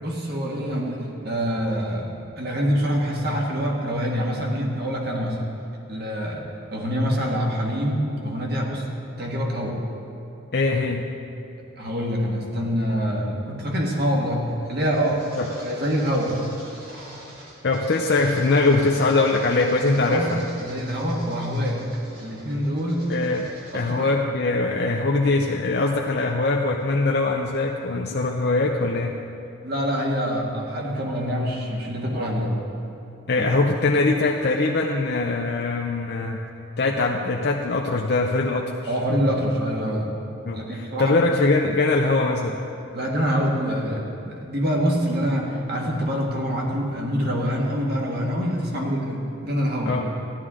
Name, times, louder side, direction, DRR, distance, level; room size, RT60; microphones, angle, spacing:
voice 1, 0.0-5.5 5.9-6.4 6.7-8.9 9.2-9.8 11.8-15.3 15.6-16.4 19.8-21.8 22.2-23.2 23.7-24.2 29.6-32.6 33.4-33.5 38.9-40.1 40.5-41.3 42.9-50.0, equal, 50° right, -1 dB, 1.8 m, -25 dB
voice 2, 10.5-11.1 15.4-15.5 17.6-20.4 23.1-29.1 33.3-36.4 36.8-38.8 40.4-42.6 48.8-48.9 49.8-50.1, left 3 dB, 55° left, 0 dB, 0.6 m, -22 dB
sound 1, 14.3-23.9, right 1 dB, 90° right, 2.7 m, -44 dB
14.5 x 11.0 x 3.7 m, 2.8 s
head